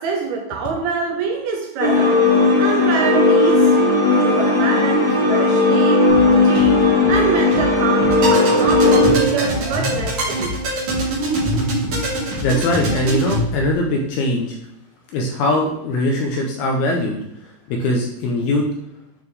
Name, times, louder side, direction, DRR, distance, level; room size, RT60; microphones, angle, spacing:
voice 1, 0.0-2.3 2.6-10.6, right 4 dB, 75° right, 0 dB, 2.5 m, -25 dB
sound 1, 1.8-9.1, left 3 dB, 60° left, 0.8 m, -15 dB
Drum kit, 6.1-13.7, left 3 dB, 25° right, 1.3 m, -31 dB
sound 2, 8.1-13.4, right 1 dB, 45° right, 2.3 m, -23 dB
voice 2, 12.4-14.6 15.1-17.2 17.7-18.6, left 1 dB, 80° left, 1 dB, 2.4 m, -21 dB
9.6 x 4.3 x 3.4 m, 0.81 s
omnidirectional pair, 5.2 m